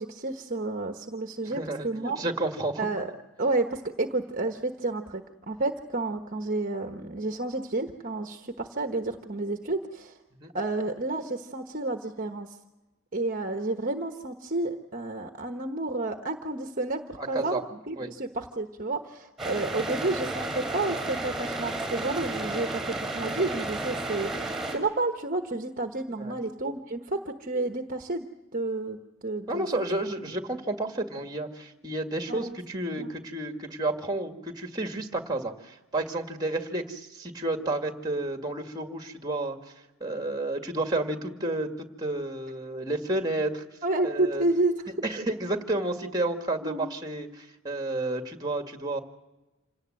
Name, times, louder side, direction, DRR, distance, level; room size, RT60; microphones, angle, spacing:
voice 1, 0.0-2.2 2.8-3.1 3.4-10.2 10.5-12.5 13.1-17.6 17.9-28.2 28.5-29.7 32.3-32.5 33.0-33.1 43.8-44.8 46.6-46.9, right 2 dB, 40° right, 5 dB, 1.2 m, -30 dB
voice 2, 1.5-2.9 10.4-10.5 17.2-17.6 18.0-18.1 26.2-26.4 29.5-39.7 40.0-41.7 42.0-43.6 44.0-44.4 45.0-49.0, right 2 dB, 20° right, 5 dB, 2.0 m, -31 dB
sound 1, 19.4-24.8, right 2 dB, ahead, 5.6 m, -32 dB
27.0 x 18.0 x 7.8 m, 1.1 s
head